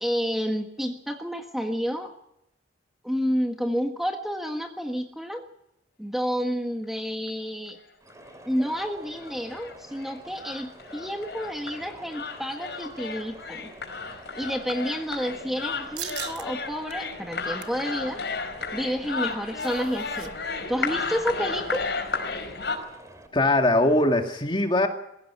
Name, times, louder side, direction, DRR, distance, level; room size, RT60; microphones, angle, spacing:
voice 1, 0.0-2.1 3.0-5.5 6.0-7.8 8.4-13.7 14.3-18.2 18.7-20.3 20.7-21.9, equal, ahead, 3 dB, 1.5 m, -30 dB
sound 1, 7.3-7.4 7.7-7.8 8.1-8.2 8.7-8.8 9.1-22.8, left 4 dB, 70° left, 4.9 m, -33 dB
sound 2, 8.0-23.3, right 1 dB, 20° right, 2.8 m, -48 dB
sound 3, 16.0-16.5 16.9-17.0 17.4-17.8 19.1-20.3 20.6-20.7 21.0-21.3, right 11 dB, 65° right, 1.1 m, -39 dB
voice 2, 23.3-24.9, left 1 dB, 30° left, 4 dB, 2.2 m, -21 dB
21.5 x 16.0 x 8.4 m, 0.81 s
head